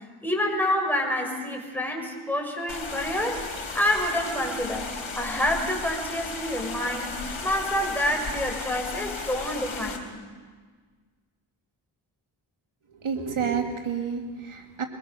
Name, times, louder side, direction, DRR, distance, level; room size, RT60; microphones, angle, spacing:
voice 1, 0.2-4.9 5.2-10.2, left 1 dB, 5° left, 1 dB, 6.4 m, -28 dB
sound 1, 2.7-10.0, left 4 dB, 70° left, 3.7 m, -35 dB
voice 2, 13.0-14.8, right 6 dB, 80° right, 3 dB, 2.2 m, -29 dB
23.5 x 22.5 x 6.9 m, 1.5 s
cardioid pair, 55°, 49 cm